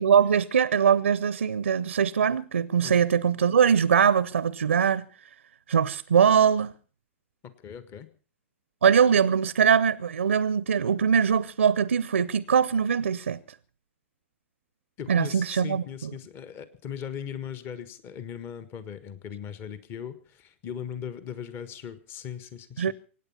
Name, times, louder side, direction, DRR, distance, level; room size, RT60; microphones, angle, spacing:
voice 1, 0.0-5.0 5.7-6.7 8.8-13.4 15.1-16.1 22.8-22.9, right 7 dB, 75° right, 0.7 m, -22 dB
voice 2, 7.4-8.1 15.0-22.8, left 8 dB, 30° left, 1.5 m, -39 dB
25.0 x 9.4 x 5.8 m
figure-of-eight pair, 105°, 7 cm